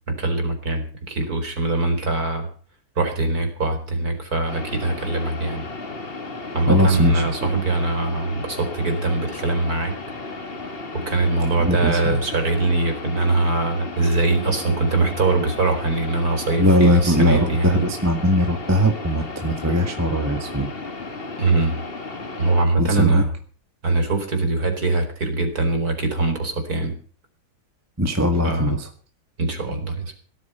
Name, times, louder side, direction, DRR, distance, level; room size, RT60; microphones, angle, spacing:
voice 1, 0.1-2.5 3.0-5.7 6.5-10.0 10.9-17.9 21.4-21.8 22.4-23.3 23.8-27.0 28.4-28.8 29.4-30.2, right 3 dB, 40° right, 4 dB, 4.9 m, -22 dB
sound 1, 4.5-22.6, left 3 dB, 30° left, 1.8 m, -34 dB
voice 2, 6.7-7.2 11.6-12.2 16.6-20.7 22.8-23.2 28.0-28.8, equal, 10° right, 4 dB, 1.6 m, -20 dB
17.5 x 13.5 x 5.7 m, 0.42 s
omnidirectional pair, 2.3 m